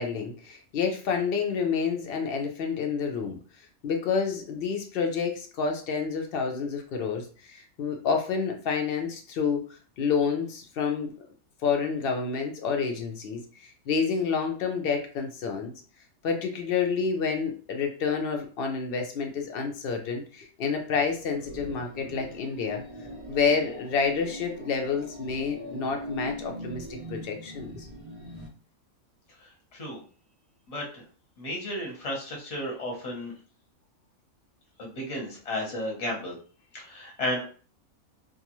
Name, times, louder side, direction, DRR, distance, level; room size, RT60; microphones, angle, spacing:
voice 1, 0.0-3.4 3.8-9.7 10.0-11.1 11.6-15.7 16.2-22.8 23.3-27.9, left 5 dB, 65° left, 3 dB, 0.6 m, -29 dB
sound 1, 21.2-28.5, right 1 dB, 50° right, 0.4 m, -41 dB
voice 2, 30.7-31.0 31.4-33.3 34.8-36.4 36.7-37.5, left 1 dB, 30° left, -1 dB, 0.8 m, -33 dB
2.4 x 2.3 x 2.9 m, 0.40 s
omnidirectional pair, 1.5 m